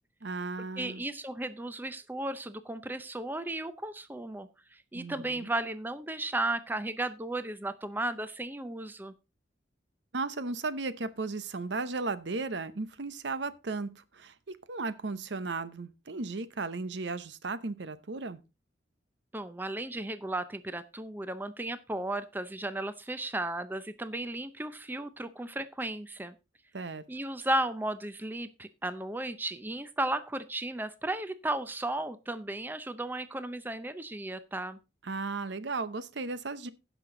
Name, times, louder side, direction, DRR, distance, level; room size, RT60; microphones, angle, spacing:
voice 1, 0.2-1.0 4.9-5.5 10.1-18.4 26.7-27.0 35.0-36.7, right 3 dB, 70° right, 0.8 m, -35 dB
voice 2, 0.8-9.1 19.3-26.3 27.1-34.8, right 1 dB, 10° right, 0.5 m, -35 dB
16.0 x 6.0 x 3.8 m
head